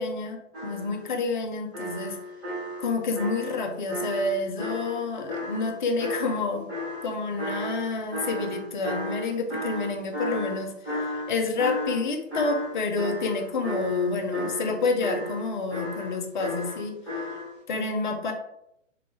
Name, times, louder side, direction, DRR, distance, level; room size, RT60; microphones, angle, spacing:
voice 1, 0.0-2.2 2.8-6.7 7.0-10.7 11.3-17.0 17.7-18.3, left 3 dB, 40° left, 4 dB, 0.5 m, -29 dB
sound 1, 0.5-1.1 1.7-5.7 6.0-12.0 12.3-17.5, equal, 10° right, 0.6 m, -33 dB
3.0 x 2.0 x 3.1 m, 0.81 s
figure-of-eight pair, 125°, 38 cm